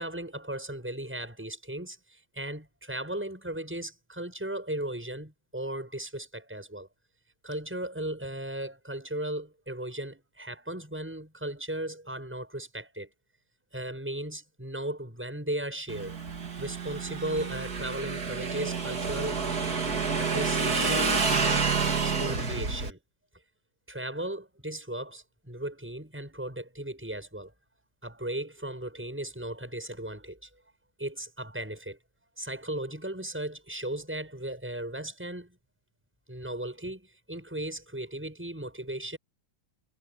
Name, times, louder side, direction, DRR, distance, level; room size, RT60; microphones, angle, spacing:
voice 1, 0.0-6.9 7.4-13.1 13.7-16.2 16.6-19.4 20.2-23.0 23.9-27.5 28.0-30.5 31.0-32.0 32.4-35.6 36.3-39.2, right 1 dB, 5° right, 7.3 m, -36 dB
Motorcycle / Engine, 15.9-22.9, right 4 dB, 50° right, 3.1 m, -29 dB
omnidirectional pair, 2.2 m